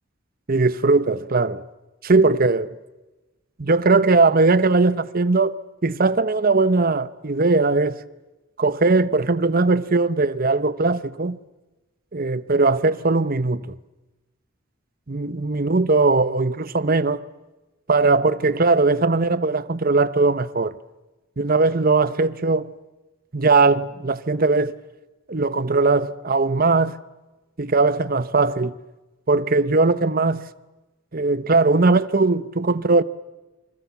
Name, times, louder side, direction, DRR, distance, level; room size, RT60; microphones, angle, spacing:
voice 1, 0.5-1.6 2.0-2.7 3.6-8.0 8.6-11.4 12.1-13.7 15.1-17.2 17.9-20.7 21.4-22.7 23.3-24.8 25.3-27.0 27.6-28.7 29.3-30.5 31.1-33.0, right 3 dB, 45° right, 0.9 m, -19 dB
29.5 x 25.5 x 7.2 m
head